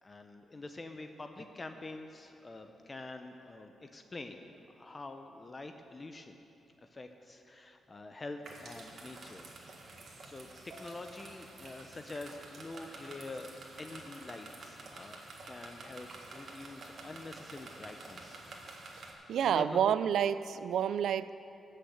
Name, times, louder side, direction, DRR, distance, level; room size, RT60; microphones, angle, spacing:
voice 1, 0.0-6.4 6.8-9.5 10.2-10.5 10.8-13.5 13.8-18.4 19.4-19.9, left 2 dB, 25° left, 6 dB, 0.6 m, -46 dB
sound 1, 8.4-19.1, right 2 dB, 55° right, 1.8 m, -49 dB
voice 2, 19.3-21.3, right 9 dB, 85° right, 14 dB, 0.4 m, -29 dB
14.5 x 6.6 x 8.0 m, 2.8 s
wide cardioid pair, 130°, 0 cm